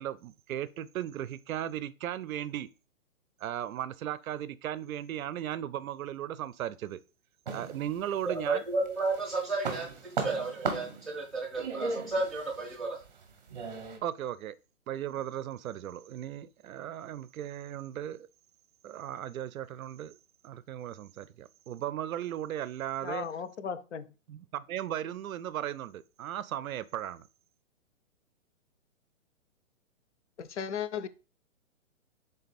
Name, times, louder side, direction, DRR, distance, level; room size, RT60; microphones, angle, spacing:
voice 1, 0.0-2.7 3.4-7.0 7.5-8.7 14.0-14.6 14.9-18.3 18.8-20.2 20.4-23.3 24.3-27.2, right 11 dB, 85° right, 0.5 m, -36 dB
sound 1, 7.5-8.5 8.9-14.0, right 4 dB, 35° right, 0.7 m, -37 dB
voice 2, 8.2-13.0, right 3 dB, ahead, 0.4 m, -32 dB
voice 3, 23.0-24.1 30.4-31.1, left 7 dB, 60° left, 0.5 m, -36 dB
3.8 x 3.3 x 4.1 m
hypercardioid pair, 175°, 40 cm